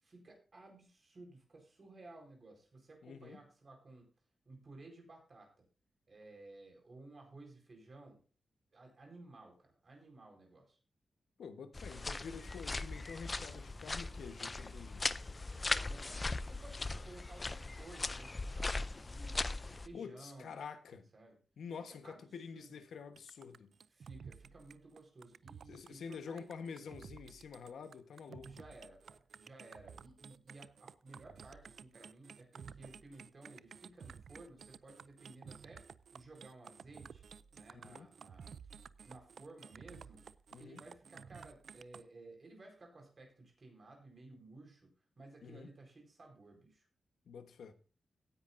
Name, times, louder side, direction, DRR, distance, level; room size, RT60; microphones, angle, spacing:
voice 1, 0.0-4.1 4.4-5.6 6.1-8.2 8.7-10.8 15.7-19.4 19.7-20.5 21.1-21.4 21.9-22.2 22.5-22.8 23.9-26.5 28.4-35.9 36.1-37.3 37.5-38.7 39.0-40.2 40.6-44.9 45.2-46.9, right 2 dB, 35° right, 4.6 m, -56 dB
voice 2, 3.0-3.4 11.4-15.1 19.9-21.1 21.6-23.7 25.7-28.5 37.8-38.1 40.5-40.8 45.4-45.7 47.3-47.7, left 6 dB, 90° left, 1.2 m, -48 dB
sound 1, 11.7-19.9, left 3 dB, 25° left, 0.4 m, -39 dB
sound 2, 23.2-42.0, right 6 dB, 65° right, 0.4 m, -54 dB
16.5 x 10.0 x 2.6 m
wide cardioid pair, 150°, 0 cm